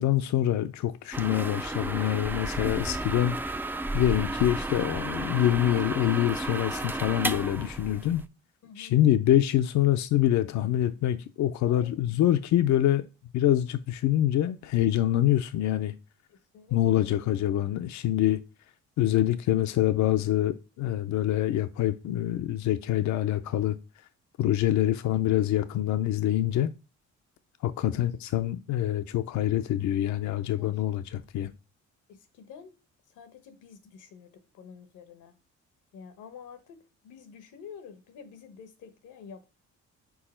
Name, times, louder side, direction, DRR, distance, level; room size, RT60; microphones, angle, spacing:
voice 1, 0.0-3.4 3.9-8.2 8.8-13.1 13.3-15.9 16.7-18.4 19.0-23.8 24.4-26.7 27.6-31.5, left 12 dB, 70° left, 0.5 m, -25 dB
sound 1, 1.1-8.2, right 2 dB, 5° right, 0.3 m, -33 dB
voice 2, 8.6-9.0 11.6-12.2 16.3-17.1 27.8-28.0 30.6-30.8 32.1-32.8 33.1-35.4 35.9-39.4, left 6 dB, 90° left, 1.1 m, -49 dB
4.7 x 4.7 x 4.3 m
cardioid pair, 90°, 30 cm